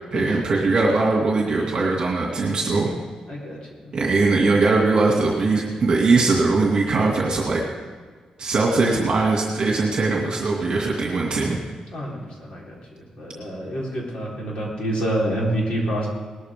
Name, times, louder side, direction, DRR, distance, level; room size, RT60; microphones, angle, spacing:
voice 1, 0.1-2.9 3.9-7.6 8.4-11.6, right 3 dB, 45° right, -2 dB, 2.4 m, -20 dB
voice 2, 11.9-16.1, right 1 dB, 50° left, -4 dB, 4.2 m, -27 dB
19.0 x 13.5 x 3.8 m, 1.5 s
wide cardioid pair, 165°, 2 cm